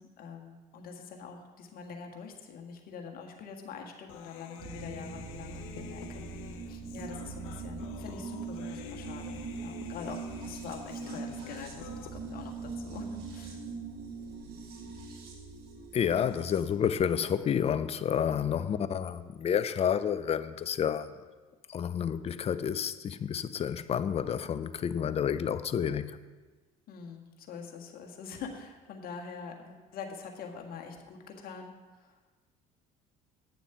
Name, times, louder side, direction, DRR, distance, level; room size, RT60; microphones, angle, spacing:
voice 1, 0.0-13.6 18.6-19.0 26.9-32.2, left 6 dB, 55° left, 1.6 m, -45 dB
Human voice, 4.1-12.1, left 10 dB, 75° left, 0.7 m, -49 dB
sound 1, 4.6-16.6, right 4 dB, 60° right, 1.7 m, -41 dB
voice 2, 15.9-21.1 21.7-26.2, left 8 dB, 35° left, 0.6 m, -30 dB
9.2 x 7.0 x 5.8 m
hypercardioid pair, 65°, 18 cm